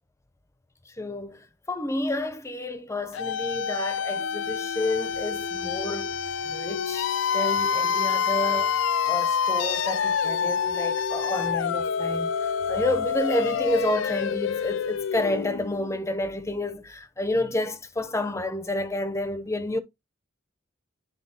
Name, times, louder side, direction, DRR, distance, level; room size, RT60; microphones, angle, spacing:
voice 1, 0.9-6.2 6.5-19.8, left 1 dB, 15° left, 0.6 m, -30 dB
sound 1, 3.1-16.0, left 7 dB, 75° left, 0.4 m, -27 dB
10.5 x 3.9 x 2.8 m
head